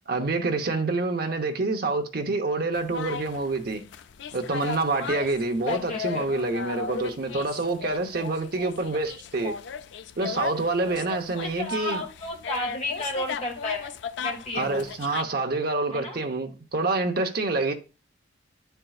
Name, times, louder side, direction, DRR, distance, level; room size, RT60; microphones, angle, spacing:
voice 1, 0.1-3.8 4.3-9.6 10.2-12.0 14.5-17.7, right 3 dB, 50° right, 0.8 m, -27 dB
sound 1, 2.7-15.2, left 6 dB, 65° left, 0.3 m, -36 dB
voice 2, 5.7-6.3 11.4-13.9 14.2-14.9 15.9-16.2, left 1 dB, 35° left, 1.6 m, -32 dB
9.9 x 4.5 x 2.3 m
head